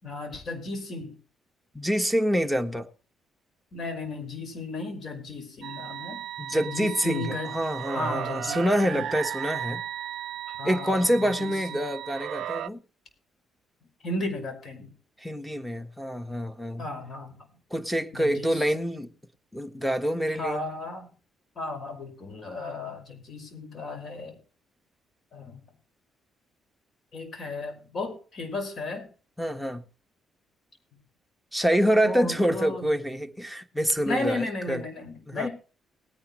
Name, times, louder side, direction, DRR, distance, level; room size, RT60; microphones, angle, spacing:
voice 1, 0.0-1.1 3.7-6.2 6.5-7.5 7.9-9.0 10.5-11.8 14.0-14.9 16.8-17.4 18.1-18.6 20.4-21.1 21.6-24.4 25.3-25.6 27.1-29.1 32.0-32.9 34.1-35.5, left 2 dB, 50° left, 5.5 m, -34 dB
voice 2, 1.7-2.9 6.4-9.8 10.6-12.8 15.2-16.8 17.7-19.1 19.5-20.6 29.4-29.8 31.5-34.8 35.3-35.5, equal, ahead, 1.3 m, -26 dB
sound 1, 5.6-12.7, right 11 dB, 70° right, 0.5 m, -35 dB
19.0 x 10.0 x 3.1 m
cardioid pair, 90°, 0 cm